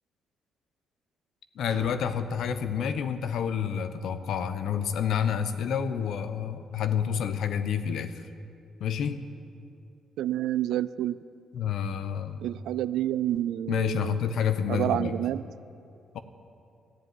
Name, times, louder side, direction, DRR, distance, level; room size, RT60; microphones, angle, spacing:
voice 1, 1.6-8.2 8.8-9.2 11.5-12.4 13.7-15.1 16.1-16.2, left 8 dB, 70° left, 10 dB, 0.8 m, -29 dB
sound 1, 1.7-4.2, right 2 dB, 60° right, 2.1 m, -49 dB
voice 2, 10.2-11.2 12.4-14.2 14.7-15.5, right 12 dB, 80° right, 16 dB, 0.3 m, -29 dB
14.0 x 7.7 x 9.5 m, 2.6 s
cardioid pair, 90°, 0 cm